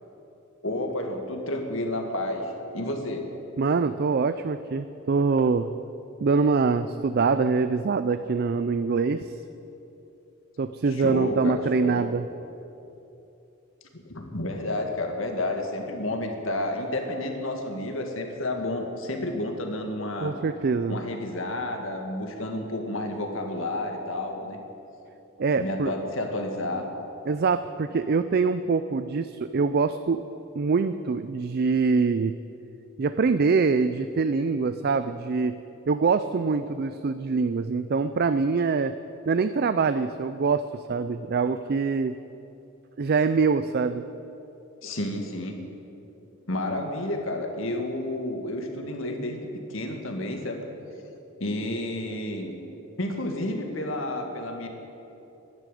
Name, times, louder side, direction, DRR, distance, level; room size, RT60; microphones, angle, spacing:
voice 1, 0.6-3.3 10.9-12.0 13.9-20.3 20.9-24.6 25.6-26.9 44.8-45.6 46.5-50.6 51.4-52.5 53.0-54.7, left 1 dB, 65° left, 3 dB, 2.0 m, -31 dB
voice 2, 3.6-5.7 6.2-9.3 10.6-12.2 20.2-21.0 25.4-25.9 27.3-30.2 30.6-32.4 33.0-35.5 35.9-38.9 39.3-42.2 43.0-44.0, right 4 dB, 50° right, 11 dB, 0.4 m, -24 dB
12.5 x 11.5 x 9.2 m, 2.9 s
head